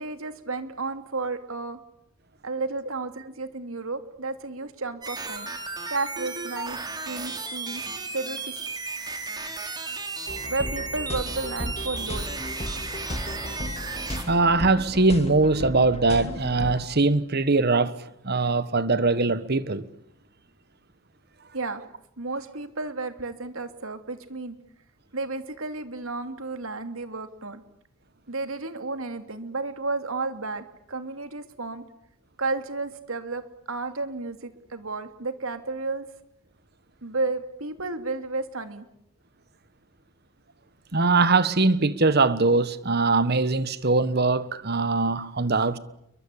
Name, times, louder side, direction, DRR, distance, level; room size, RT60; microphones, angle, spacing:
voice 1, 0.0-1.8 2.4-5.5 5.9-6.8 7.1-7.8 8.1-8.6 10.5-12.2 21.5-21.8 22.2-24.6 25.1-27.6 28.3-31.8 32.4-36.1 37.0-38.8, right 3 dB, 75° right, 2.8 m, -32 dB
sound 1, 5.0-14.2, right 3 dB, 20° right, 3.8 m, -34 dB
sound 2, 10.3-16.8, left 1 dB, 30° left, 2.8 m, -35 dB
voice 2, 14.3-17.9 18.2-19.9 40.9-45.8, right 3 dB, 50° right, 1.4 m, -22 dB
29.0 x 23.5 x 8.6 m
head